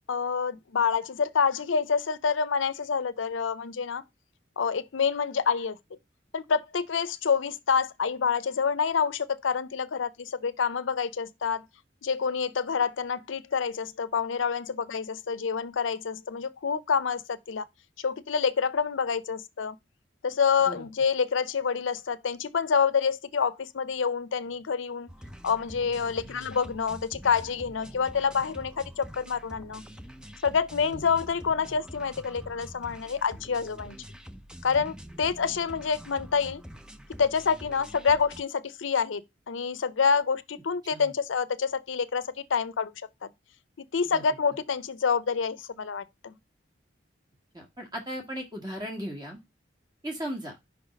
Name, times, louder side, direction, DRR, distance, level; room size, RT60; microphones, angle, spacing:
voice 1, 0.1-4.0 4.6-5.8 6.3-11.6 12.0-17.6 18.0-19.8 20.2-25.1 25.4-29.8 30.4-34.0 34.6-36.6 37.2-39.2 39.5-42.2 42.5-42.9 43.2-43.3 43.9-46.3, left 6 dB, 85° left, 0.6 m, -27 dB
sound 1, 25.1-38.4, equal, 5° right, 0.4 m, -45 dB
voice 2, 47.5-49.4 50.0-50.6, equal, 20° right, 1.8 m, -36 dB
5.5 x 4.0 x 5.1 m
head